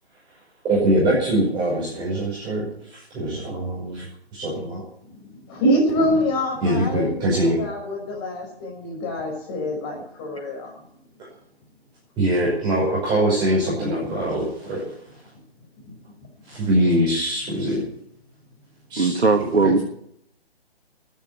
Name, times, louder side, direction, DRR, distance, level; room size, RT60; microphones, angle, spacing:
voice 1, 0.6-4.1 4.3-4.8 6.0-6.1 6.6-7.6 12.2-14.9 16.5-17.8 18.9-19.2, right 1 dB, 15° right, -7 dB, 5.5 m, -23 dB
voice 2, 5.2-10.7 15.9-16.0, equal, 25° left, 1 dB, 5.8 m, -25 dB
voice 3, 19.0-19.8, right 3 dB, 85° right, 5 dB, 1.8 m, -19 dB
14.0 x 9.4 x 9.7 m, 0.70 s
figure-of-eight pair, 150°, 32 cm